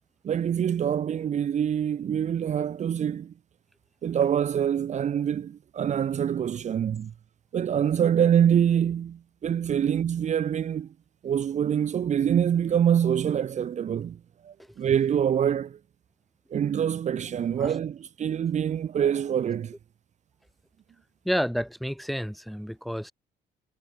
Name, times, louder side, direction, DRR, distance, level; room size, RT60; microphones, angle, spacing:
voice 1, 0.2-3.3 4.0-7.1 7.5-10.9 11.2-15.8 16.5-19.8, right 9 dB, 45° right, 1.3 m, -25 dB
voice 2, 21.3-23.1, equal, ahead, 2.0 m, -30 dB
cardioid pair, 110°, 17 cm